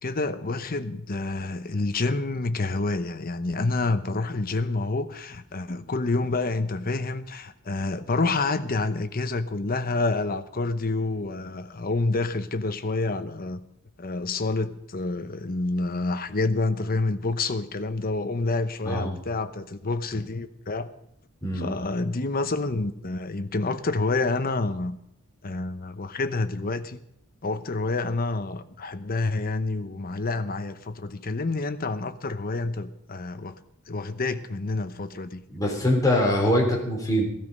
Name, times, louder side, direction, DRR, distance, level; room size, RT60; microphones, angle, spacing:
voice 1, 0.0-13.6 14.0-20.9 21.5-25.0 25.4-27.0 27.4-33.6 33.9-35.4, left 3 dB, 40° left, 10 dB, 0.9 m, -28 dB
voice 2, 18.9-19.2 21.4-21.7 35.5-37.3, left 1 dB, 15° left, -1 dB, 3.8 m, -23 dB
15.5 x 13.0 x 5.4 m, 0.78 s
head